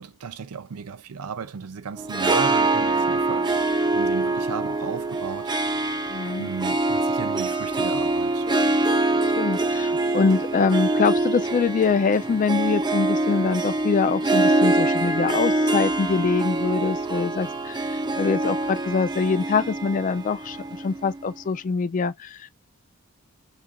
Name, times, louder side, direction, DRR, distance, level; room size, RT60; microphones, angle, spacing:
voice 1, 0.0-5.5 6.4-8.4, right 6 dB, 85° right, 0.5 m, -34 dB
Harp, 2.0-21.3, right 2 dB, 20° right, 0.5 m, -24 dB
voice 2, 6.1-6.5 9.2-22.5, left 5 dB, 35° left, 0.3 m, -24 dB
5.5 x 2.4 x 2.2 m
head